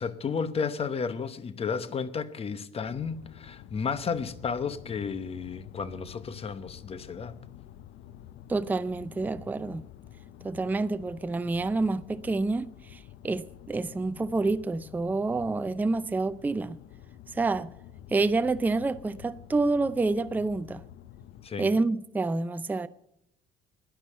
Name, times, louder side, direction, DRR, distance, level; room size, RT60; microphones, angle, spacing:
voice 1, 0.0-7.4 21.4-21.7, left 5 dB, 35° left, 0.9 m, -33 dB
sound 1, 2.8-21.5, left 11 dB, 75° left, 0.6 m, -49 dB
voice 2, 8.5-9.8 10.4-16.8 17.3-17.7 18.1-20.8 21.6-22.9, right 3 dB, 10° right, 0.4 m, -28 dB
11.0 x 10.5 x 8.4 m
cardioid pair, 110°, 18 cm